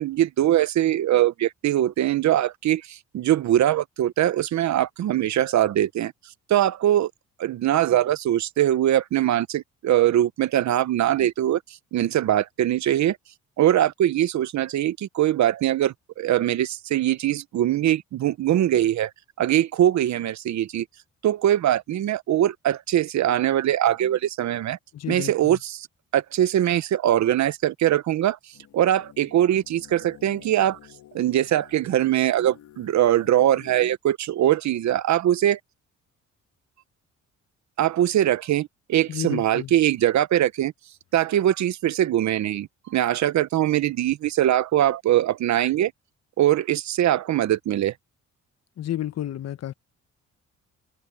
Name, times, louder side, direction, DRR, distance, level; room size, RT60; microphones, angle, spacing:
voice 1, 0.0-6.1 6.5-7.1 7.4-13.2 13.6-19.1 19.4-20.8 21.2-24.8 25.1-25.6 26.1-28.4 28.7-30.8 31.1-35.6 37.8-40.7 41.1-45.9 46.4-47.9, right 12 dB, 65° right, 1.0 m, -22 dB
voice 2, 24.9-25.6 39.1-39.7 48.8-49.7, left 12 dB, 55° left, 1.1 m, -31 dB
sound 1, 28.5-33.9, left 11 dB, 75° left, 2.6 m, -50 dB
cardioid pair, 90°, 30 cm